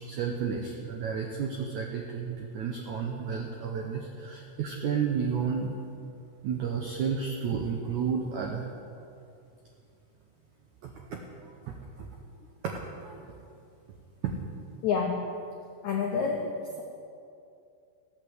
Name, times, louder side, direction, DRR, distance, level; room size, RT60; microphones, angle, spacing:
voice 1, 0.1-5.7 6.4-8.7 10.8-11.2 12.0-12.1 12.6-12.7 13.0-13.4 14.2-14.3, right 6 dB, 85° right, 1 dB, 1.7 m, -32 dB
voice 2, 14.8-15.3 15.8-16.8, left 5 dB, 85° left, 0 dB, 1.7 m, -28 dB
14.5 x 8.6 x 7.9 m, 2.5 s
omnidirectional pair, 4.8 m